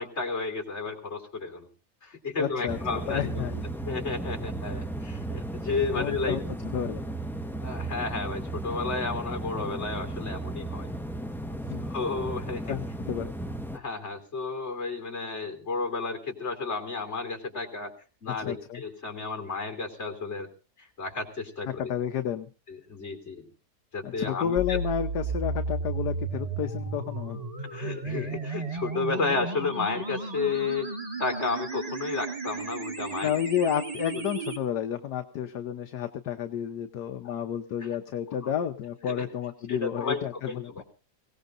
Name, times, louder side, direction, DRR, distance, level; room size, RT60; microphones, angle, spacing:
voice 1, 0.0-1.7 2.0-3.5 3.9-6.4 7.6-10.9 11.9-12.8 13.7-17.9 18.2-20.5 20.8-21.9 22.7-23.5 23.9-24.8 27.6-30.9 31.2-33.3 34.1-34.2 37.2-37.3 38.4-38.5 39.1-39.2 39.7-40.8, left 4 dB, 35° left, 4 dB, 3.4 m, -32 dB
voice 2, 2.4-2.8 3.1-3.6 5.9-6.4 6.7-7.0 11.7-11.9 12.7-13.3 18.3-18.8 21.6-22.5 24.0-27.4 33.2-40.8, left 9 dB, 70° left, 7 dB, 1.4 m, -31 dB
sound 1, 2.7-13.8, right 2 dB, 5° left, 0.3 m, -35 dB
sound 2, 24.6-34.6, right 3 dB, 20° right, 1.7 m, -34 dB
23.5 x 17.5 x 2.6 m, 0.33 s
omnidirectional pair, 1.9 m